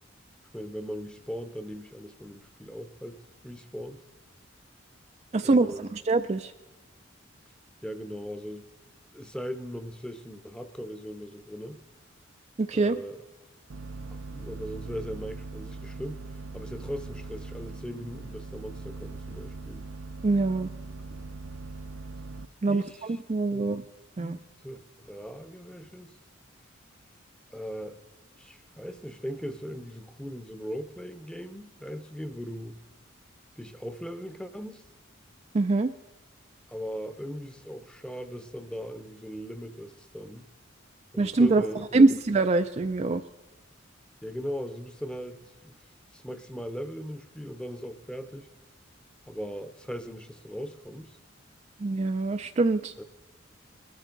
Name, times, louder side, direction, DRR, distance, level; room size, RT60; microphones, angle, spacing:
voice 1, 0.5-4.0 5.4-6.0 7.8-8.7 9.1-11.8 12.7-13.2 14.1-16.2 16.5-19.9 22.7-23.2 23.5-23.7 24.2-26.1 27.5-28.0 28.4-32.8 33.6-34.8 36.7-40.5 41.1-42.1 44.2-45.8 46.1-48.5 49.2-51.2 53.0-53.1, equal, 5° left, 10 dB, 0.8 m, -39 dB
voice 2, 5.3-6.5 12.6-13.0 20.2-20.7 22.6-23.8 24.2-24.4 35.5-35.9 41.2-41.6 41.9-43.2 51.8-52.9, right 3 dB, 35° right, 8 dB, 0.4 m, -24 dB
sound 1, 13.7-22.5, right 3 dB, 75° right, 0.6 m, -41 dB
20.5 x 13.5 x 3.9 m, 1.2 s
head